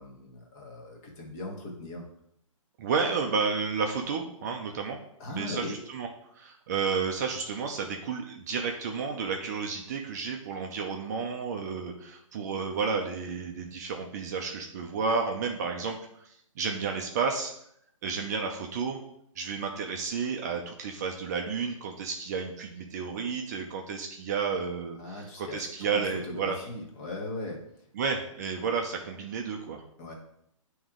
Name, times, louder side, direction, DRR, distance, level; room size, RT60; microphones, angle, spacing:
voice 1, 0.0-2.1 5.2-5.8 25.0-27.6 30.0-30.1, left 2 dB, 30° left, 0 dB, 1.3 m, -39 dB
voice 2, 2.8-5.0 5.3-6.1 6.3-17.5 18.0-19.0 19.4-26.6 27.9-29.8, right 5 dB, 30° right, 3 dB, 0.6 m, -31 dB
9.0 x 3.1 x 3.7 m, 0.72 s
hypercardioid pair, 155°, 17 cm